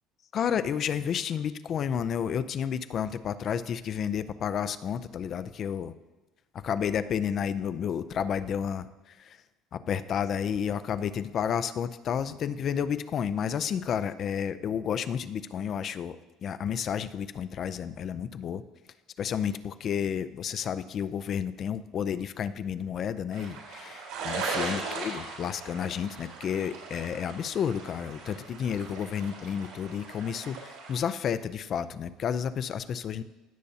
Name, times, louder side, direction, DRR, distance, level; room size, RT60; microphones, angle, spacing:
voice 1, 0.3-5.9 6.6-8.9 9.2-9.4 9.7-16.2 16.4-18.6 19.2-33.2, left 8 dB, 40° left, 14 dB, 0.4 m, -31 dB
sound 1, 23.3-31.0, right 4 dB, 85° right, 3.6 m, -38 dB
16.5 x 6.9 x 2.8 m, 1.1 s
cardioid pair, 150°, 0 cm